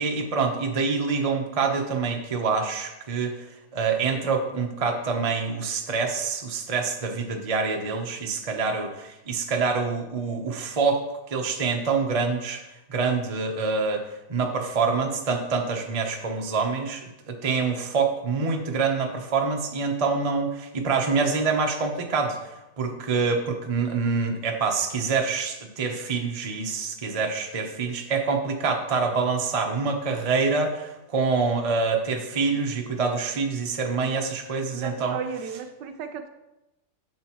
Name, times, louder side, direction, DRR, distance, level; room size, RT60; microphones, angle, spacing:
voice 1, 0.0-3.4 3.7-11.0 11.3-12.6 12.9-14.0 14.3-22.4 22.8-35.2, right 4 dB, 50° right, 2 dB, 0.4 m, -26 dB
voice 2, 34.7-36.3, right 6 dB, 75° right, 7 dB, 1.1 m, -34 dB
10.5 x 6.8 x 3.0 m, 0.95 s
omnidirectional pair, 2.2 m